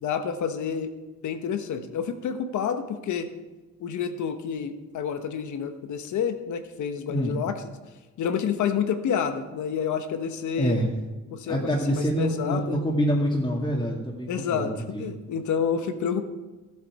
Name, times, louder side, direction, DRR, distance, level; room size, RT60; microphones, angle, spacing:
voice 1, 0.0-0.9 1.2-3.3 3.8-7.6 8.2-10.8 11.3-12.8 14.3-16.2, left 7 dB, 75° left, 8 dB, 1.2 m, -29 dB
voice 2, 11.5-15.1, equal, 15° left, -4 dB, 2.3 m, -26 dB
14.5 x 8.3 x 4.8 m, 1.2 s
cardioid pair, 90°, 30 cm